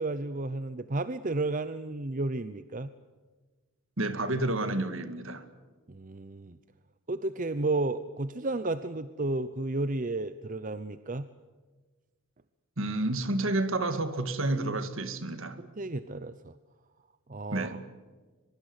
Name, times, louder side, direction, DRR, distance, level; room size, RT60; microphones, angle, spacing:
voice 1, 0.0-2.9 5.9-6.6 7.1-11.3 15.6-16.5 17.3-17.8, right 2 dB, 40° right, 0.7 m, -32 dB
voice 2, 4.0-5.5 12.8-15.6 17.5-17.8, right 2 dB, 65° right, 2.2 m, -30 dB
23.5 x 23.5 x 8.1 m
head